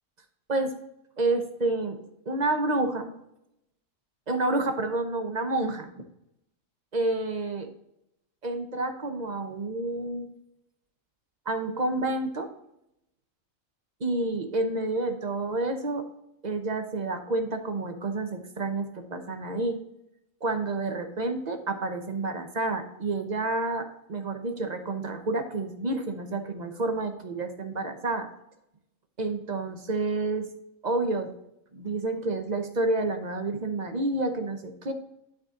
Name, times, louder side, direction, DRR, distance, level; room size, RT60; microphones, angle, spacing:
voice 1, 1.2-2.0 2.3-3.1 4.3-5.9 6.9-7.7 8.4-10.3 11.5-12.5 14.0-16.1 16.4-19.8 20.4-28.3 29.2-30.5 30.8-31.3 31.7-34.9, right 2 dB, 35° right, 6 dB, 0.9 m, -29 dB
11.5 x 4.2 x 3.7 m, 0.81 s
omnidirectional pair, 1.4 m